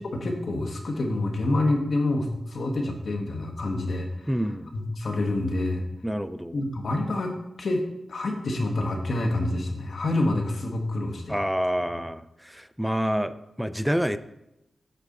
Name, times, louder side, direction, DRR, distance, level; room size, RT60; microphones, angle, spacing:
voice 1, 0.1-4.3 4.7-5.8 6.5-7.8 8.1-11.4, left 2 dB, 70° left, 4 dB, 1.4 m, -27 dB
voice 2, 4.3-4.8 6.0-6.7 11.3-14.2, equal, 5° right, 13 dB, 0.5 m, -28 dB
8.2 x 6.7 x 3.9 m, 0.88 s
cardioid pair, 55°, 0 cm